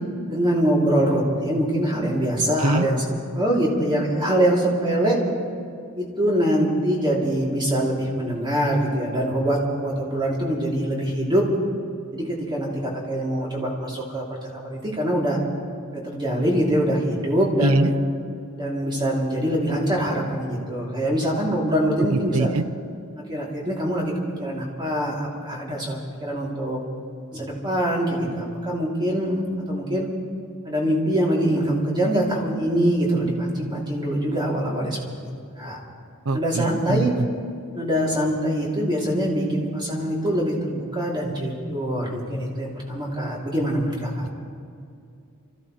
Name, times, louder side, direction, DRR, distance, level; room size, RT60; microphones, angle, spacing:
voice 1, 0.3-3.0 3.3-5.2 6.0-11.5 12.1-15.4 15.9-18.0 18.6-22.5 23.3-24.1 24.4-26.8 27.3-30.1 30.6-35.8 36.3-37.1 37.7-44.3, right 1 dB, 20° right, -4 dB, 3.1 m, -24 dB
voice 2, 17.6-17.9 22.1-22.6 36.3-37.1, right 2 dB, 70° right, 11 dB, 0.7 m, -23 dB
26.0 x 15.0 x 3.3 m, 2.4 s
head